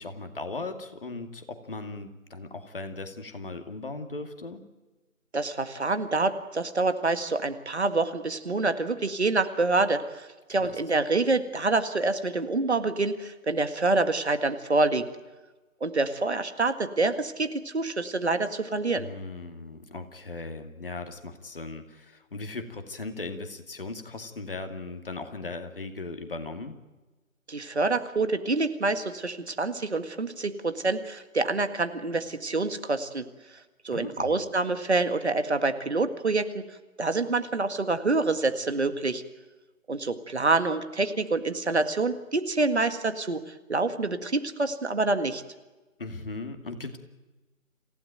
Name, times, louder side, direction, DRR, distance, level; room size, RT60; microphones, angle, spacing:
voice 1, 0.0-4.6 10.5-10.7 18.9-26.8 33.9-34.4 46.0-47.0, left 3 dB, 40° left, 6 dB, 2.4 m, -38 dB
voice 2, 5.3-15.1 15.8-19.1 27.5-33.3 33.8-36.6 37.0-39.2 39.9-45.4, right 3 dB, 50° right, 9 dB, 1.9 m, -27 dB
27.0 x 16.5 x 9.2 m, 1.2 s
figure-of-eight pair, 160°, 41 cm